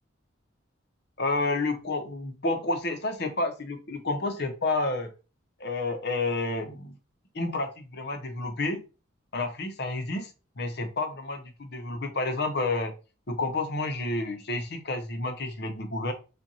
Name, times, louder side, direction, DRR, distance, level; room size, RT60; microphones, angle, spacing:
voice 1, 1.2-5.1 5.6-7.0 7.3-8.8 9.3-10.3 10.6-12.9 13.3-16.1, left 2 dB, 55° left, 6 dB, 0.9 m, -30 dB
7.5 x 2.6 x 2.7 m, 0.32 s
head